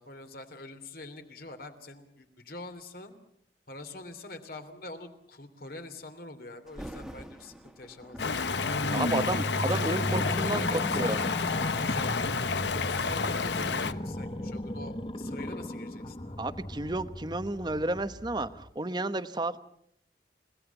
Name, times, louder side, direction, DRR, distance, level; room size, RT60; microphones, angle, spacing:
voice 1, 0.0-3.1 3.7-8.4 9.0-9.3 9.7-11.3 11.7-16.4, left 2 dB, 55° left, 8 dB, 3.0 m, -44 dB
Thunder, 6.7-11.6 12.3-12.5 13.2-16.0 16.3-16.4, equal, ahead, 1.9 m, -49 dB
Stream, 8.2-13.9, left 4 dB, 80° left, 1.0 m, -30 dB
sound 1, 8.2-18.7, left 1 dB, 30° left, 0.9 m, -36 dB
voice 2, 8.9-11.2 16.4-19.6, right 2 dB, 25° right, 11 dB, 1.1 m, -31 dB
30.0 x 17.5 x 7.1 m, 0.69 s
head